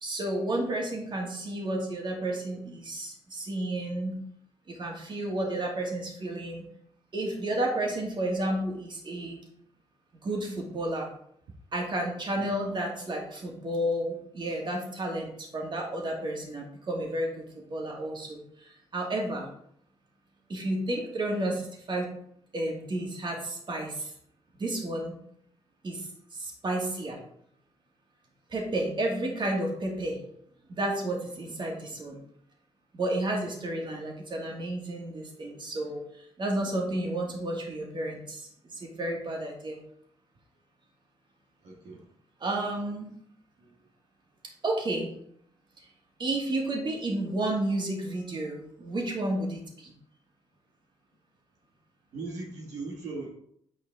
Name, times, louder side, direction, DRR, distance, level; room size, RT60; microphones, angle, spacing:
voice 1, 0.0-4.2 4.7-6.6 7.1-9.4 10.2-11.1 11.7-18.4 18.9-19.5 20.5-22.1 22.5-24.1 24.5-25.1 25.8-26.1 26.3-27.2 28.5-30.2 30.7-32.2 32.9-36.0 36.4-39.8 42.4-43.1 44.6-45.1 46.2-49.9, right 1 dB, 40° right, 0 dB, 2.4 m, -31 dB
voice 2, 41.6-42.0 52.1-53.3, right 3 dB, 80° right, -2 dB, 1.7 m, -38 dB
9.8 x 4.8 x 3.8 m, 0.70 s
cardioid pair, 70°, 12 cm